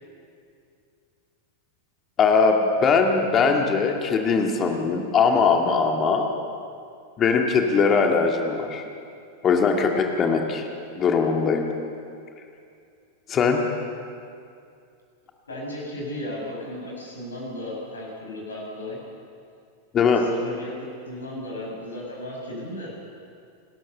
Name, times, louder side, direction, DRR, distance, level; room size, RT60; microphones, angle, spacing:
voice 1, 2.2-6.3 7.2-8.8 9.4-10.7 11.0-11.7 13.3-13.6 19.9-20.3, left 5 dB, 25° left, 3 dB, 2.0 m, -20 dB
voice 2, 15.5-19.0 20.1-20.7 21.0-22.9, left 1 dB, 70° left, -2 dB, 6.8 m, -35 dB
28.5 x 13.0 x 6.8 m, 2.4 s
figure-of-eight pair, 90°, 0 cm